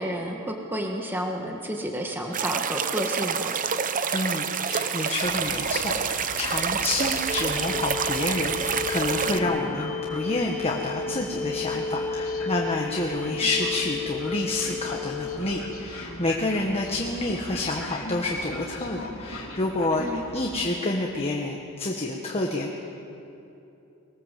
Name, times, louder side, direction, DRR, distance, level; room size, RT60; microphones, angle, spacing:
voice 1, 0.0-3.5 20.0-20.3, equal, 10° right, 1 dB, 1.6 m, -30 dB
sound 1, 2.3-9.4, right 7 dB, 40° right, 0.7 m, -28 dB
voice 2, 4.1-22.8, left 2 dB, 30° left, 0 dB, 1.6 m, -28 dB
Train, 5.2-20.7, left 1 dB, 70° left, 3.5 m, -40 dB
sound 2, 7.3-15.4, left 5 dB, 10° left, 1.1 m, -32 dB
22.0 x 19.5 x 7.6 m, 2.9 s
head